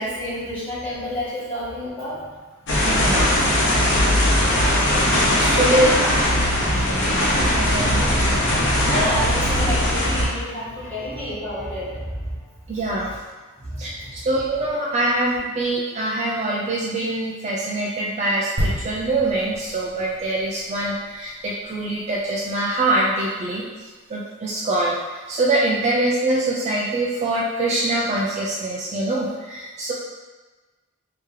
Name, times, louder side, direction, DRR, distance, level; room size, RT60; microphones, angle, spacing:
voice 1, 0.0-2.2 3.8-3.9 4.4-4.9 5.4-6.1 6.5-6.9 8.9-12.4 13.6-14.1, equal, 10° left, -13 dB, 1.4 m, -30 dB
sound 1, 2.7-10.3, left 1 dB, 60° left, 0.9 m, -19 dB
voice 2, 2.8-3.3 5.4-5.9 7.5-8.1 12.7-13.1 13.8-23.6 24.1-29.9, right 2 dB, 30° right, -5 dB, 0.4 m, -24 dB
sound 2, 18.6-22.2 22.5-22.7, equal, 70° right, 1.3 m, -31 dB
3.2 x 2.8 x 3.5 m, 1.3 s
head